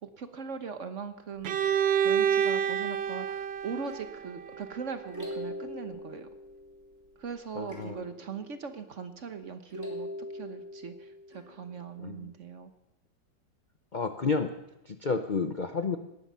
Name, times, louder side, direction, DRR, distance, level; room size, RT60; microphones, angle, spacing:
voice 1, 0.0-1.6 2.0-6.3 7.2-12.7, right 6 dB, 50° right, 9 dB, 1.1 m, -40 dB
Bowed string instrument, 1.4-5.3, right 8 dB, 80° right, 0.5 m, -29 dB
sound 1, 3.8-7.1 7.7-9.4 9.7-12.1, left 1 dB, 10° right, 3.1 m, -43 dB
voice 2, 7.6-8.0 12.0-12.3 13.9-14.5 14.8-16.0, left 4 dB, 50° left, 8 dB, 0.5 m, -30 dB
18.0 x 13.5 x 5.6 m, 0.89 s
omnidirectional pair, 2.0 m